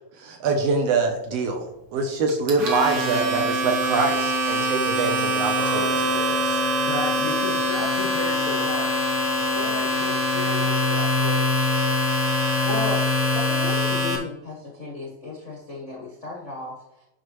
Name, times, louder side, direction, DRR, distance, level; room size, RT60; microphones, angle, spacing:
voice 1, 0.2-6.6, right 4 dB, 85° right, 4 dB, 1.4 m, -25 dB
Domestic sounds home sounds, 2.3-14.2, left 1 dB, 55° right, 1.5 m, -24 dB
Wind instrument woodwind instrument, 5.5-14.1, equal, 25° right, 0.8 m, -29 dB
voice 2, 6.8-9.1 9.5-11.7, left 2 dB, 25° left, -4 dB, 1.0 m, -33 dB
voice 3, 12.6-13.0 13.3-17.1, left 3 dB, 80° left, -3 dB, 0.6 m, -34 dB
9.6 x 6.4 x 3.1 m, 0.89 s
omnidirectional pair, 4.0 m